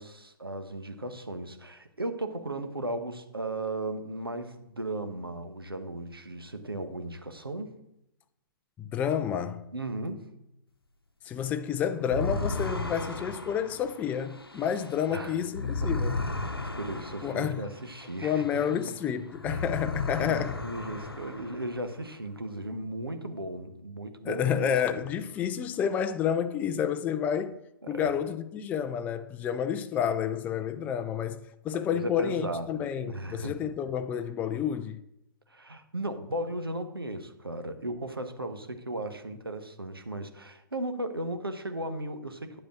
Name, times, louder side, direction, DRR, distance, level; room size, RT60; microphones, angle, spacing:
voice 1, 0.0-7.7 9.7-10.3 15.1-15.4 15.8-15.9 16.8-18.4 18.7-18.9 19.5-19.6 20.2-24.7 27.8-28.1 30.7-30.9 31.9-33.5 35.5-42.6, right 1 dB, 85° right, 1.1 m, -36 dB
voice 2, 8.8-9.7 11.2-16.2 17.2-17.7 18.2-20.6 24.2-27.6 27.9-35.0, left 8 dB, 15° left, 0.3 m, -30 dB
sound 1, 12.0-18.9 19.3-22.0, left 2 dB, 90° left, 0.8 m, -35 dB
9.5 x 5.1 x 6.0 m
figure-of-eight pair, 120°, 12 cm